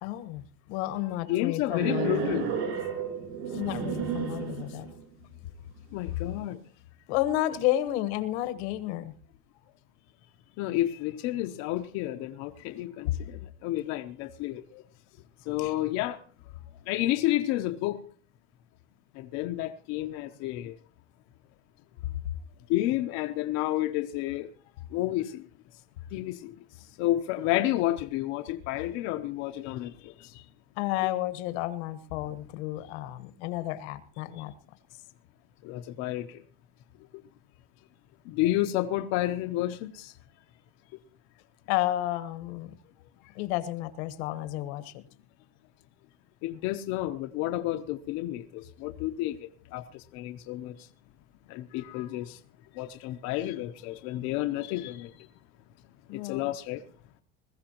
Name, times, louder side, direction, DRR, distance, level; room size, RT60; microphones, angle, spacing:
voice 1, 0.0-2.3 3.5-4.9 7.1-9.1 14.7-14.8 15.6-15.7 22.0-22.1 30.8-34.5 41.7-42.7 43.3-44.9 56.1-56.5, left 14 dB, 75° left, 1.4 m, -31 dB
voice 2, 1.3-2.5 5.9-6.6 10.6-13.1 13.6-14.6 15.5-16.2 16.9-18.0 19.2-20.7 22.7-24.5 24.9-25.4 26.1-26.5 27.0-30.1 35.6-36.4 38.3-40.1 46.4-50.7 51.5-52.4 52.8-55.1 56.1-56.8, left 15 dB, 50° left, 0.8 m, -30 dB
sound 1, 1.7-5.0, right 7 dB, 90° right, 7.1 m, -32 dB
21.0 x 15.0 x 3.0 m
cardioid pair, 170°, 34 cm